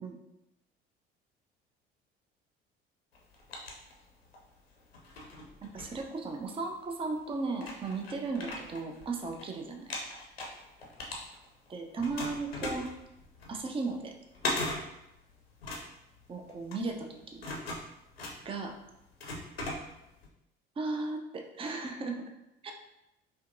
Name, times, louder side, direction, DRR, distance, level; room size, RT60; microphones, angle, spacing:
sound 1, 3.1-4.4 4.9-6.6 7.2-7.3 7.6-9.5 9.7-11.7 12.0-20.3, left 2 dB, 85° left, 0.6 m, -39 dB
voice 1, 5.7-9.9 11.7-12.9 13.5-14.1 16.3-17.4 18.4-18.8 20.8-22.3 22.6-22.7, right 3 dB, 20° right, 3 dB, 0.5 m, -36 dB
5.0 x 2.2 x 2.6 m, 0.89 s
figure-of-eight pair, 55°, 30 cm